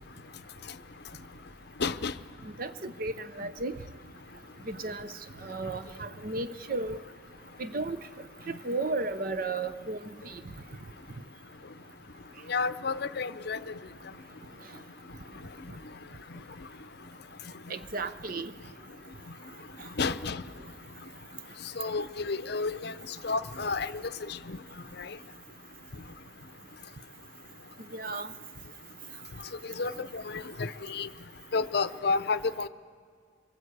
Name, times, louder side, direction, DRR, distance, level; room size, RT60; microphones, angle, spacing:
voice 1, 1.8-2.1 12.5-13.6 20.0-20.4 21.8-22.9 23.2-23.9 24.3-24.6 25.0-25.1 29.8-31.1 31.5-32.7, left 4 dB, 55° left, 12 dB, 0.6 m, -30 dB
voice 2, 2.4-3.8 4.6-5.1 5.4-7.0 7.6-8.0 8.5-10.4 17.7-18.5 19.8-19.9 27.8-28.3, right 3 dB, 50° right, 11 dB, 0.7 m, -34 dB
25.5 x 23.5 x 8.1 m, 2.1 s
head